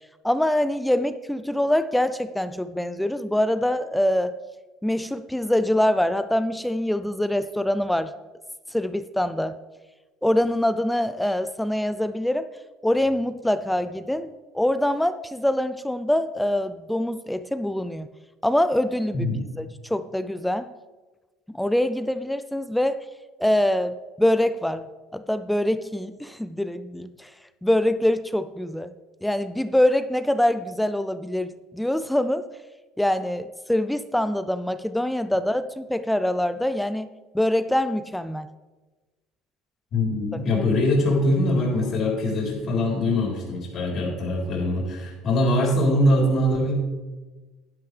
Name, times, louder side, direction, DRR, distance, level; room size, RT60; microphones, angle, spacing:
voice 1, 0.2-4.3 4.8-8.1 8.7-9.6 10.2-12.5 12.8-18.1 18.4-19.3 19.6-20.7 21.5-23.0 23.4-24.9 25.1-27.3 27.6-28.9 29.2-31.5 31.7-32.5 33.0-37.1 37.3-38.5 40.3-40.4, left 1 dB, 5° left, 12 dB, 0.4 m, -24 dB
voice 2, 19.1-19.4 39.9-46.7, left 1 dB, 45° left, -2 dB, 3.4 m, -22 dB
11.0 x 10.5 x 3.3 m, 1.2 s
cardioid pair, 120°, 0 cm